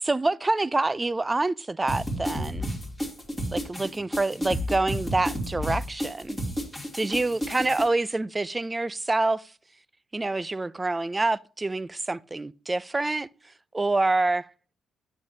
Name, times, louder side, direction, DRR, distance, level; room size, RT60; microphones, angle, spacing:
voice 1, 0.0-2.7 3.5-6.4 6.9-9.4 10.1-13.3 13.7-14.5, right 2 dB, 20° right, 0.3 m, -26 dB
sound 1, 1.9-7.8, equal, ahead, 2.7 m, -31 dB
9.5 x 8.2 x 2.8 m
cardioid pair, 90°, 0 cm